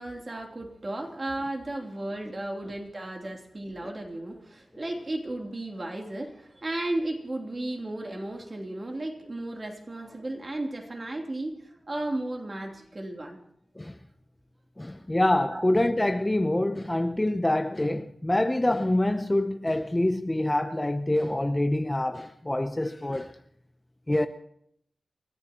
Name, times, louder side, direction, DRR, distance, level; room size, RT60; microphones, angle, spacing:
voice 1, 0.0-13.4 14.9-15.0 15.5-15.7, right 1 dB, 30° right, 3.1 m, -34 dB
voice 2, 14.8-23.3 24.1-24.3, left 1 dB, 15° left, 0.7 m, -26 dB
29.5 x 14.0 x 3.0 m
wide cardioid pair, 130°, 0 cm